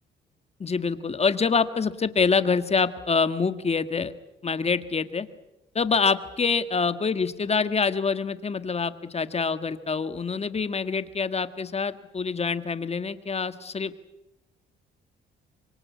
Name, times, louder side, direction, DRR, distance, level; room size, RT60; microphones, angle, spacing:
voice 1, 0.6-4.1 4.4-5.3 5.8-13.9, left 5 dB, 30° left, 11 dB, 1.7 m, -26 dB
25.5 x 24.0 x 8.4 m, 0.95 s
cardioid pair, 90°, 20 cm